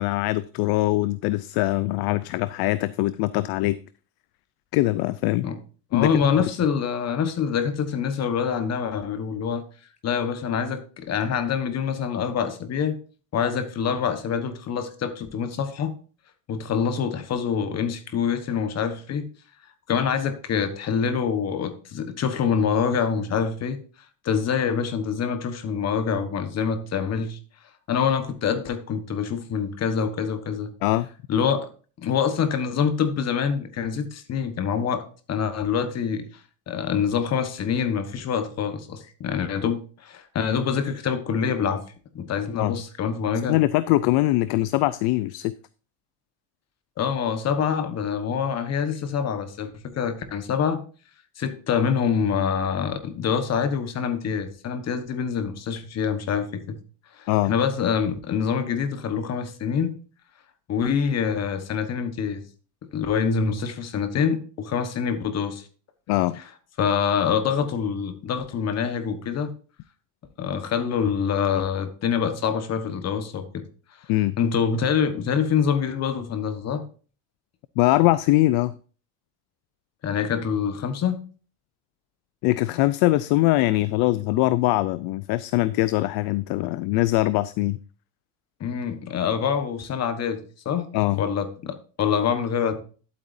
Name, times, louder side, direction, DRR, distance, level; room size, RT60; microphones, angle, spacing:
voice 1, 0.0-3.8 4.7-5.5 5.9-6.1 30.8-31.1 42.6-42.7 43.5-45.5 57.3-57.5 66.1-66.4 74.1-74.4 77.8-78.7 82.4-87.8 90.9-91.2, left 18 dB, 55° left, 16 dB, 0.5 m, -22 dB
voice 2, 5.9-9.6 10.0-13.0 13.3-15.9 16.5-19.3 19.9-23.8 24.2-27.4 27.9-30.7 31.3-31.7 32.0-36.3 36.7-41.8 42.1-43.6 47.0-50.8 51.4-56.8 57.2-60.0 60.7-62.4 62.9-65.7 66.8-69.5 70.4-73.6 74.4-76.8 80.0-81.2 88.6-92.7, left 7 dB, 35° left, 9 dB, 1.3 m, -25 dB
11.5 x 8.4 x 2.7 m, 0.38 s
cardioid pair, 130°, 47 cm